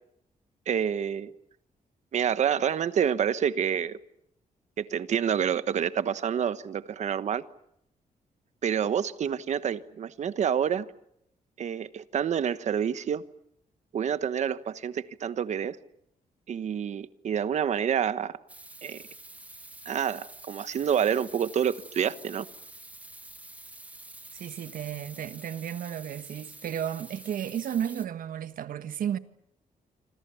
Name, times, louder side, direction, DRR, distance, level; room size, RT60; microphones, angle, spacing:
voice 1, 0.7-1.3 2.1-4.0 4.8-7.4 8.6-10.8 11.6-13.2 13.9-15.8 16.5-18.4 18.8-19.0 19.8-22.5, right 8 dB, 50° right, 1.2 m, -28 dB
sound 1, 18.5-28.1, right 2 dB, 10° right, 1.1 m, -48 dB
voice 2, 24.3-29.2, right 9 dB, 70° right, 1.4 m, -33 dB
27.0 x 26.5 x 7.0 m
wide cardioid pair, 170°, 15 cm